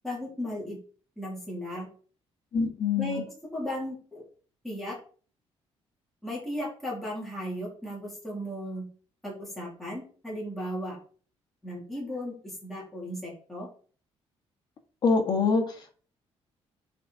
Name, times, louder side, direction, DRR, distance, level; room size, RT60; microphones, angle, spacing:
voice 1, 0.0-0.8 1.2-1.9 3.0-3.2 3.5-4.2 4.6-5.0 6.2-8.8 9.2-11.0 11.6-13.7, equal, ahead, -6 dB, 3.2 m, -35 dB
voice 2, 2.5-3.2 15.0-15.9, left 4 dB, 40° left, 3 dB, 1.7 m, -25 dB
8.2 x 4.8 x 4.0 m, 0.42 s
cardioid pair, 165°, 11 cm